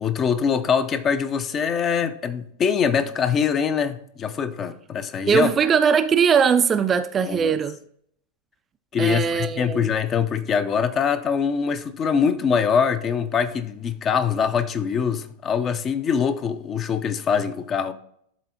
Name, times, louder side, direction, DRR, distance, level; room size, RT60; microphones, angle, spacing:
voice 1, 0.0-5.5 7.3-7.6 8.9-17.9, left 6 dB, 25° left, 0.5 m, -23 dB
voice 2, 5.3-7.8 9.0-9.8, right 6 dB, 20° right, 0.3 m, -20 dB
11.5 x 4.0 x 2.8 m
figure-of-eight pair, 90°, 0 cm